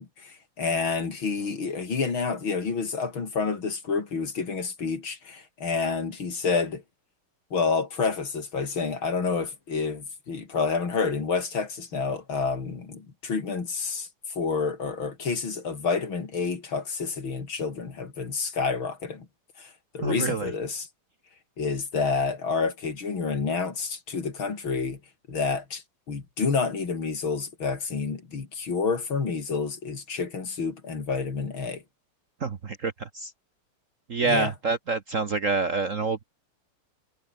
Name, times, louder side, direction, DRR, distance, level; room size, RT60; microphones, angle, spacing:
voice 1, 0.0-6.8 7.5-14.1 14.4-19.3 19.6-20.9 21.6-25.0 25.3-31.8 34.3-34.5, left 4 dB, 65° left, 4.1 m, -29 dB
voice 2, 20.0-20.5 32.4-33.3 34.1-36.2, right 4 dB, 40° right, 1.3 m, -27 dB
omnidirectional pair, 2.4 m